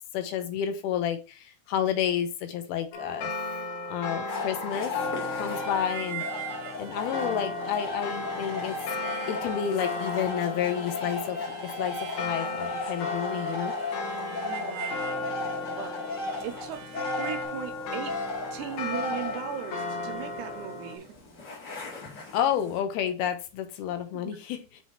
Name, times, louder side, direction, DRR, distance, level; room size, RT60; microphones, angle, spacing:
voice 1, 0.1-3.3 3.9-4.9 5.4-6.2 6.8-8.8 9.3-11.4 11.8-13.7 22.3-24.8, left 9 dB, 80° left, 2.7 m, -30 dB
sound 1, 2.9-21.0, left 2 dB, 60° left, 1.9 m, -36 dB
sound 2, 4.3-22.8, left 3 dB, 45° left, 1.4 m, -36 dB
Harmonica, 5.5-17.5, right 9 dB, 65° right, 1.8 m, -44 dB
voice 2, 14.4-14.9 15.7-16.1 16.4-16.8 17.2-18.1 18.5-21.1 24.1-24.4, right 10 dB, 90° right, 2.7 m, -37 dB
7.4 x 2.9 x 4.4 m
omnidirectional pair, 4.6 m